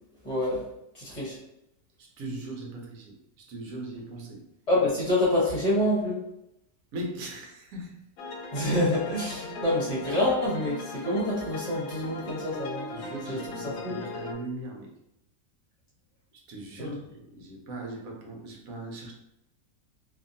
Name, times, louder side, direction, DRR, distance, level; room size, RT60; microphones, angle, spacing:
voice 1, 0.2-0.6 0.9-1.4 4.7-6.2 8.5-12.9 13.3-14.0 16.8-17.0, left 1 dB, 30° left, -6 dB, 0.8 m, -27 dB
voice 2, 2.0-4.4 6.9-8.0 12.9-14.9 16.3-19.1, right 2 dB, 65° right, 0 dB, 1.0 m, -39 dB
sound 1, 8.2-14.3, left 3 dB, 70° left, 1.0 m, -38 dB
2.7 x 2.5 x 2.6 m, 0.83 s
omnidirectional pair, 1.7 m